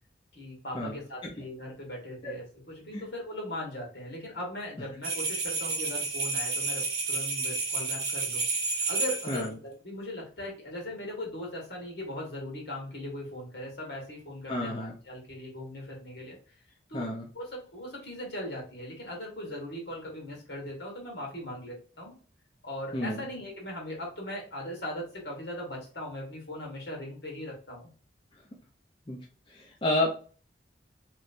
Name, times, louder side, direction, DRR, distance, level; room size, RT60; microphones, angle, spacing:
voice 1, 0.3-8.4 8.9-16.4 16.9-17.1 17.3-22.1 22.6-27.9, left 1 dB, 65° left, -1 dB, 1.5 m, -39 dB
sound 1, 5.0-9.5, right 4 dB, 55° right, 0.9 m, -30 dB
voice 2, 14.5-14.9 16.9-17.3 22.9-23.2 29.1-29.2 29.5-30.1, left 1 dB, 25° left, -3 dB, 0.5 m, -30 dB
3.2 x 3.1 x 2.6 m, 0.39 s
head